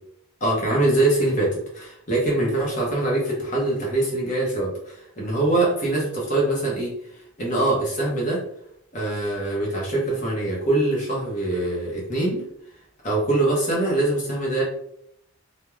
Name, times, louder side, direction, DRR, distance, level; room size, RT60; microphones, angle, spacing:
voice 1, 0.4-8.4 8.9-12.5 13.0-14.6, right 2 dB, 35° left, -4 dB, 0.7 m, -23 dB
2.3 x 2.1 x 3.0 m, 0.74 s
head